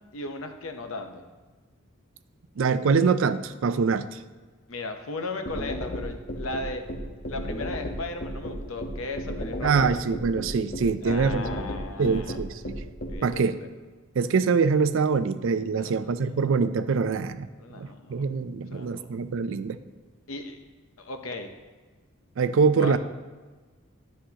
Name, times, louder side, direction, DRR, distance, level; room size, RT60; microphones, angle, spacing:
voice 1, 0.1-1.3 4.7-6.8 7.3-10.0 11.0-12.6 13.1-13.7 15.7-16.3 17.6-18.3 18.7-19.2 20.3-20.6 21.0-21.5 22.8-23.0, left 2 dB, 75° left, 6 dB, 0.8 m, -36 dB
voice 2, 2.6-4.1 9.6-11.7 12.0-12.8 13.2-13.6 14.2-17.5 17.8-19.8 22.4-23.0, right 5 dB, 65° right, 13 dB, 0.4 m, -24 dB
sound 1, 5.5-13.1, equal, 45° left, 1.0 m, -33 dB
10.0 x 6.3 x 2.9 m, 1.3 s
head